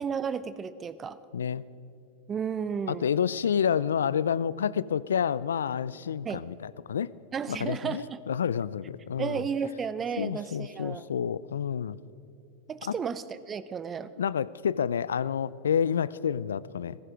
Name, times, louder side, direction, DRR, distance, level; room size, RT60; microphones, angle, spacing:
voice 1, 0.0-1.2 2.3-3.1 6.2-6.4 7.3-8.2 9.2-11.0 12.7-14.1, right 6 dB, 25° right, 15 dB, 0.7 m, -33 dB
voice 2, 1.3-1.6 2.9-7.1 7.5-9.4 10.2-12.0 12.9-13.0 14.2-17.0, left 8 dB, 85° left, 20 dB, 0.4 m, -29 dB
15.5 x 15.5 x 5.1 m, 2.6 s
hypercardioid pair, 100°, 0 cm